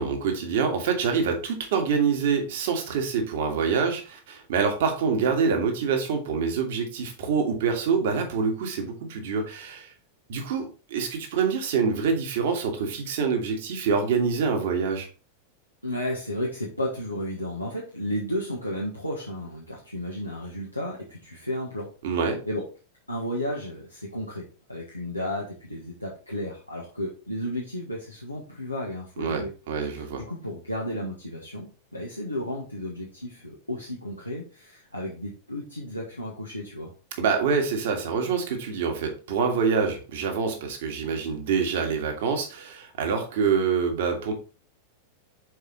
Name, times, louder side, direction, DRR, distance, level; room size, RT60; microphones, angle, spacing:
voice 1, 0.0-9.9 10.3-15.1 22.0-22.4 29.2-30.2 37.2-44.3, right 5 dB, 55° right, 3 dB, 1.8 m, -26 dB
voice 2, 15.8-21.9 22.5-22.6 23.1-29.5 29.9-30.0 30.3-36.9, left 1 dB, 85° left, -3 dB, 1.4 m, -33 dB
6.5 x 4.7 x 4.1 m, 0.36 s
figure-of-eight pair, 90°, 0 cm